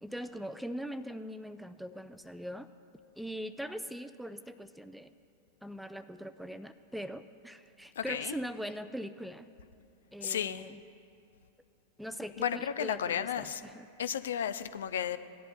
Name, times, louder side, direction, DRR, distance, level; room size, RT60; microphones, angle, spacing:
voice 1, 0.0-2.7 3.2-5.1 5.6-9.5 10.1-10.8 12.0-13.9, equal, ahead, 12 dB, 0.4 m, -41 dB
voice 2, 8.0-8.3 10.2-10.7 12.4-13.6 14.0-15.2, left 9 dB, 60° left, 12 dB, 0.4 m, -33 dB
18.5 x 11.0 x 2.2 m, 2.5 s
figure-of-eight pair, 90°, 0 cm